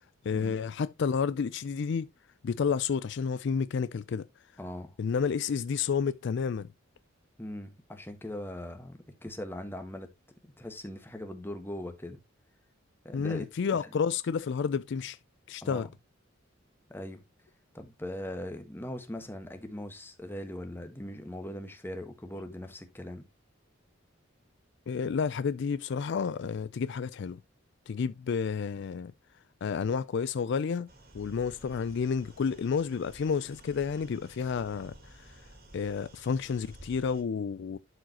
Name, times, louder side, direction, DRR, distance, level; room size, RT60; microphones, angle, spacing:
voice 1, 0.2-2.1 2.4-4.3 5.0-6.7 13.1-15.2 15.5-15.9 24.9-27.4 27.9-29.1 29.6-30.9 31.1-35.3 35.7-37.8, left 6 dB, 60° left, 0.4 m, -30 dB
voice 2, 4.6-4.9 7.4-10.1 10.6-12.2 13.0-13.5 13.7-13.9 15.6-15.9 16.9-17.2 17.7-23.3, left 1 dB, 10° left, 1.3 m, -40 dB
sound 1, 30.9-37.2, right 1 dB, 50° right, 2.2 m, -53 dB
11.5 x 4.8 x 2.9 m
head